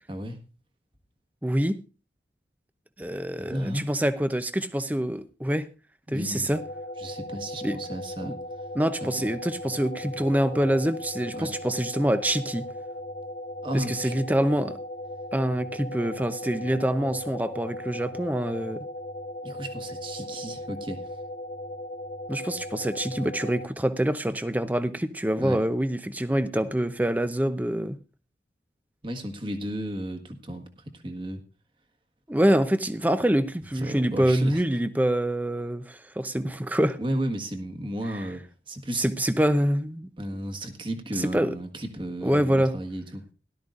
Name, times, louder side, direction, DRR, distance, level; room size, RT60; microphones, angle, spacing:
voice 1, 0.1-0.4 3.4-3.9 6.1-6.6 7.0-8.4 9.2-9.3 11.3-11.5 13.6-14.1 19.4-21.1 25.4-25.6 29.0-31.4 33.8-34.6 37.0-38.4 38.7-39.0 40.2-43.2, right 1 dB, 30° right, 6 dB, 1.5 m, -33 dB
voice 2, 1.4-1.8 3.0-5.7 6.1-6.6 7.6-7.8 8.2-8.3 8.7-12.7 13.7-14.8 15.3-18.8 22.3-28.0 32.3-37.0 38.1-38.3 39.0-40.1 41.2-41.5 42.2-42.7, right 1 dB, 10° right, 11 dB, 0.6 m, -25 dB
sound 1, 6.5-23.7, left 1 dB, 55° left, 1.0 m, -37 dB
17.5 x 12.5 x 2.5 m, 0.32 s
head